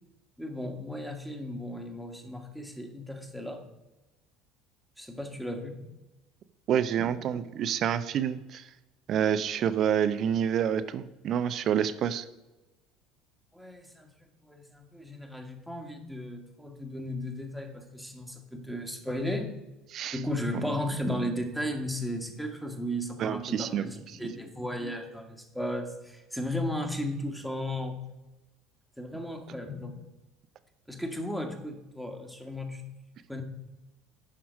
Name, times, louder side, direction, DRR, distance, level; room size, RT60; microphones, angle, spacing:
voice 1, 0.4-3.7 5.0-5.8 7.0-7.1 13.5-19.5 20.1-28.0 29.0-30.0 30.9-32.8 33.3-33.4, left 1 dB, ahead, 4 dB, 1.6 m, -35 dB
voice 2, 6.7-8.7 9.1-12.3 19.9-20.2 23.2-23.9, right 9 dB, 45° right, 13 dB, 0.6 m, -28 dB
10.0 x 5.7 x 5.1 m, 1.0 s
figure-of-eight pair, 65°, 0 cm